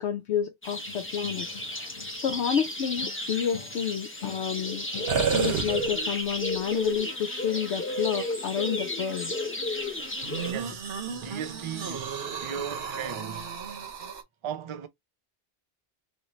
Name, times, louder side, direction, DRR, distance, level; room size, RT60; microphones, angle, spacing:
voice 1, 0.0-4.9 5.3-9.3, left 8 dB, 80° left, 0.9 m, -30 dB
sound 1, 0.6-10.5, left 1 dB, 15° left, 0.6 m, -33 dB
sound 2, 0.9-2.6 3.0-5.6, left 7 dB, 45° left, 0.8 m, -45 dB
sound 3, 5.1-6.3 7.0-7.1 10.2-14.2, right 6 dB, 65° right, 1.1 m, -32 dB
voice 2, 10.4-13.6 14.4-14.9, right 8 dB, 45° right, 0.4 m, -37 dB
3.2 x 3.0 x 2.7 m
omnidirectional pair, 1.1 m